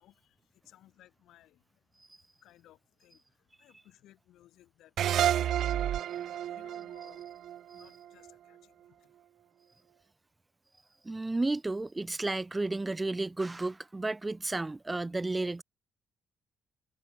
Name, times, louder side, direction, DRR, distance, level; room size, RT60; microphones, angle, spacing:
voice 1, 0.0-2.1 2.4-9.2, left 13 dB, 85° left, 4.9 m, -61 dB
sound 1, 5.0-8.3, right 11 dB, 70° right, 0.7 m, -30 dB
voice 2, 11.0-15.6, right 2 dB, 20° right, 1.6 m, -32 dB
cardioid pair, 90°, 0 cm